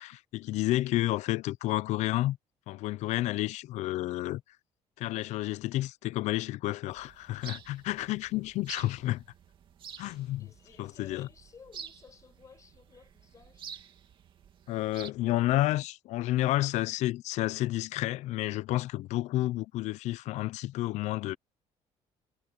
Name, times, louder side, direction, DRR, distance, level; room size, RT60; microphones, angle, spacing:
voice 1, 0.0-2.4 2.7-4.4 5.0-9.2 10.0-10.4 10.8-11.3 14.7-21.4, left 16 dB, 75° left, 0.5 m, -30 dB
sound 1, 6.9-15.1, right 7 dB, 45° right, 2.5 m, -49 dB
voice 2, 10.4-13.7, left 6 dB, 25° left, 5.6 m, -56 dB
cardioid pair, 160°, 12 cm